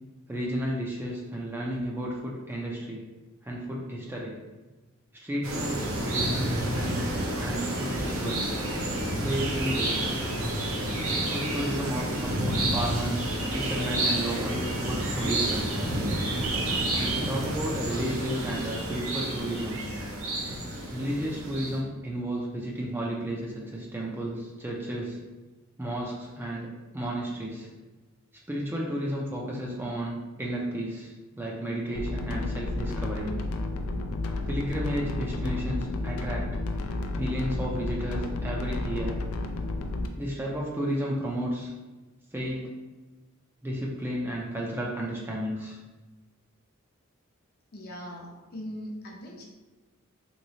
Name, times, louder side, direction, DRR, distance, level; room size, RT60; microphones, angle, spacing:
voice 1, 0.3-3.0 3.4-4.3 5.2-8.5 9.2-10.0 11.3-15.8 17.0-19.8 20.9-25.2 25.8-26.7 26.9-27.7 28.5-33.3 34.5-36.5 37.2-39.2 40.2-41.7 42.3-42.7 43.6-45.8, right 1 dB, 10° right, -3 dB, 0.4 m, -32 dB
sound 1, 5.4-21.8, right 1 dB, 75° right, 0.7 m, -29 dB
sound 2, 32.0-40.1, left 2 dB, 85° left, 0.4 m, -31 dB
voice 2, 47.7-49.5, equal, 50° left, -2 dB, 0.6 m, -40 dB
3.1 x 3.0 x 2.7 m, 1.2 s
head